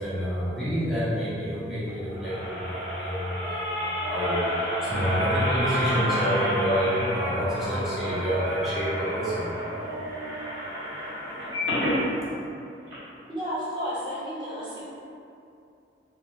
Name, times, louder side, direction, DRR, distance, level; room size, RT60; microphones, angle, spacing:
voice 1, 0.0-4.4 4.9-9.5, equal, ahead, -12 dB, 0.6 m, -28 dB
sound 1, 1.9-12.0 12.5-12.6 12.9-13.0, equal, 90° right, 1.1 m, -30 dB
voice 2, 13.3-14.8, equal, 25° right, -10 dB, 0.9 m, -32 dB
3.3 x 2.2 x 2.7 m, 2.6 s
head